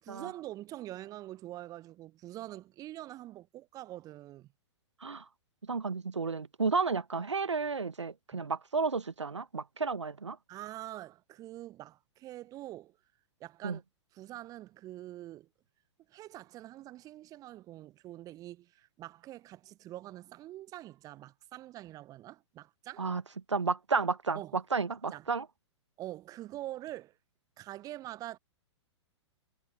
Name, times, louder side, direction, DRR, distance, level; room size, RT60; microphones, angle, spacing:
voice 1, 0.0-4.5 8.3-8.5 10.5-13.0 13.4-13.8 14.1-15.5 16.1-23.1 24.3-24.6 25.1-25.3 26.0-27.2 27.6-28.4, right 15 dB, 25° right, 0.9 m, -45 dB
voice 2, 5.7-10.4 13.6-13.8 23.0-23.2 23.5-24.4 24.7-25.4, right 4 dB, 75° right, 1.4 m, -32 dB
figure-of-eight pair, 110°, 15 cm